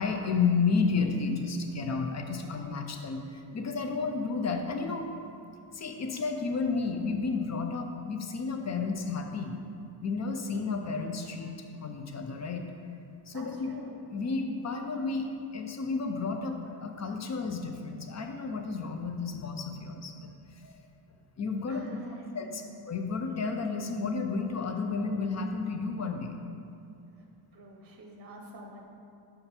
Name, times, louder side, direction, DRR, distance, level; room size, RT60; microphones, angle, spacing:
voice 1, 0.0-5.1 5.7-9.6 10.0-12.7 13.3-13.7 14.1-20.8 21.4-22.0 22.3-26.3, left 4 dB, 35° left, 5 dB, 0.6 m, -32 dB
voice 2, 13.3-13.9 21.7-22.7 27.5-28.8, right 1 dB, 30° right, 1 dB, 0.8 m, -47 dB
5.9 x 5.1 x 4.3 m, 2.6 s
cardioid pair, 110°, 48 cm